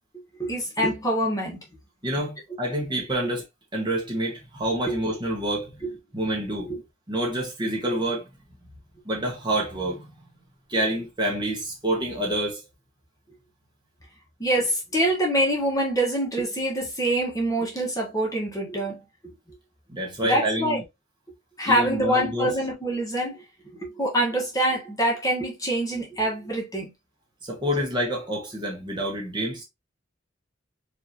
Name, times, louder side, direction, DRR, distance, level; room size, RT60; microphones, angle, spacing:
voice 1, 0.4-1.6 4.9-5.0 5.8-5.9 6.7-6.8 14.4-19.0 19.2-19.3 20.2-20.8 21.6-23.4 23.7-26.9, right 1 dB, 20° left, 1.3 m, -25 dB
voice 2, 2.0-3.4 3.7-5.8 6.1-6.7 7.1-8.3 9.0-10.0 10.7-12.6 19.9-20.8 21.6-22.5 27.4-29.6, right 1 dB, 25° right, 1.4 m, -27 dB
4.7 x 2.9 x 2.8 m
head